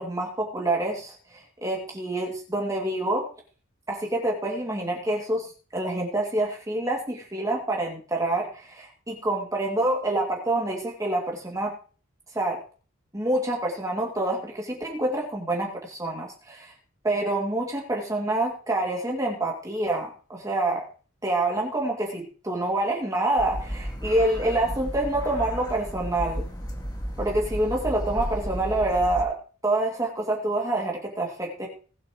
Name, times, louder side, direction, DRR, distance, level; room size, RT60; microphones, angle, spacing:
voice 1, 0.0-3.3 3.9-11.7 12.3-12.6 13.1-16.7 17.0-20.8 21.2-26.4 27.2-29.4 29.6-31.7, right 1 dB, 15° right, -1 dB, 2.5 m, -27 dB
sound 1, 23.4-29.2, equal, 20° left, 2.0 m, -33 dB
20.0 x 8.6 x 3.1 m, 0.38 s
head